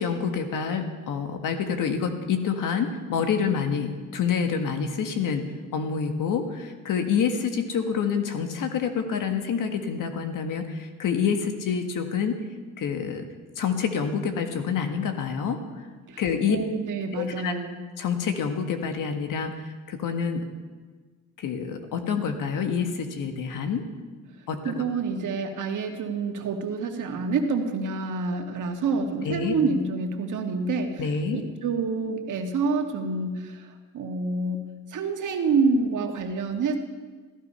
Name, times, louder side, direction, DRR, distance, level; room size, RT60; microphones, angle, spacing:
voice 1, 0.0-12.4 12.8-13.3 13.6-15.6 16.2-16.6 17.2-17.5 18.0-19.5 19.9-20.5 21.4-23.8 24.5-24.8 29.2-29.5 31.0-31.5, left 6 dB, 70° left, 6 dB, 1.7 m, -27 dB
voice 2, 16.5-17.8 24.7-33.7 33.9-34.6 34.9-36.8, right 4 dB, 65° right, 4 dB, 1.8 m, -27 dB
15.0 x 14.0 x 5.6 m, 1.4 s
cardioid pair, 85°, 32 cm